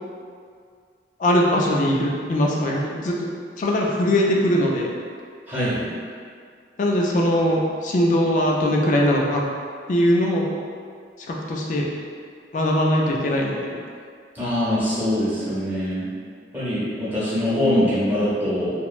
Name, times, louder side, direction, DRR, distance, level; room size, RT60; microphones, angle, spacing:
voice 1, 1.2-3.2 3.6-4.9 6.8-9.4 9.9-10.4 11.3-11.9 12.5-13.8, equal, 45° left, -2 dB, 0.3 m, -21 dB
voice 2, 5.5-5.9 14.3-16.1 16.5-18.7, left 1 dB, 10° right, -11 dB, 0.8 m, -23 dB
2.9 x 2.1 x 2.4 m, 2.1 s
head